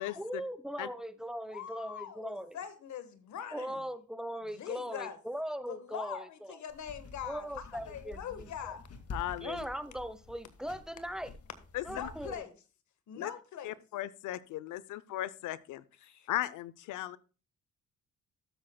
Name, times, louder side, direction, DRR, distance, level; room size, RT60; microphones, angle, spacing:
voice 1, 0.2-2.6 3.5-6.6 7.2-8.5 9.4-11.3 11.9-12.4, equal, ahead, 1.0 m, -39 dB
voice 2, 1.5-3.8 4.5-5.2 5.7-8.9 11.9-12.5 13.1-13.8 16.0-16.3, left 8 dB, 70° left, 1.6 m, -42 dB
sound 1, 6.7-12.4, left 3 dB, 55° left, 2.1 m, -48 dB
voice 3, 9.1-9.6 11.7-12.1 13.2-13.3 13.6-15.8 16.3-17.2, left 14 dB, 85° left, 0.7 m, -37 dB
13.0 x 7.8 x 2.3 m
cardioid pair, 90°, 30 cm